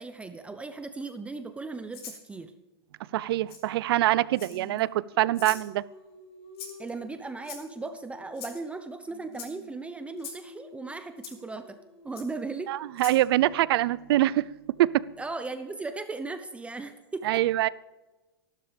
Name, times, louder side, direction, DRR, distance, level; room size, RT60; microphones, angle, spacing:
voice 1, 0.0-2.5 6.8-11.8 12.0-12.7 15.2-17.4, right 3 dB, 10° right, 8 dB, 0.7 m, -37 dB
Rattle (instrument), 1.9-2.2 3.5-3.6 4.3-4.8 5.3-5.7 6.6-6.9 7.4-7.9 8.3-8.6 9.3-9.5 10.2-10.4 11.2-11.3 12.1-12.3 12.9-13.2, left 6 dB, 75° left, 5.1 m, -41 dB
voice 2, 3.1-5.8 12.7-14.5 14.8-14.9 17.2-17.7, right 15 dB, 70° right, 20 dB, 0.5 m, -24 dB
Singing, 4.5-8.8 9.1-15.1, left 4 dB, 60° left, 4.7 m, -52 dB
26.5 x 12.0 x 3.4 m, 1.1 s
hypercardioid pair, 130°, 13 cm